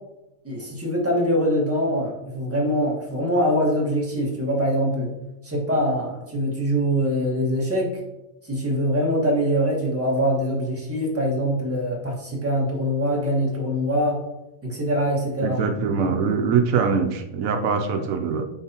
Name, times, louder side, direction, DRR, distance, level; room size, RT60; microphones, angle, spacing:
voice 1, 0.4-5.1 5.4-8.0 8.4-14.2 14.6-15.6 18.0-18.1, equal, 10° right, -3 dB, 1.5 m, -23 dB
voice 2, 15.4-18.5, right 5 dB, 80° right, 6 dB, 1.0 m, -23 dB
9.3 x 4.0 x 2.8 m, 0.95 s
omnidirectional pair, 1.4 m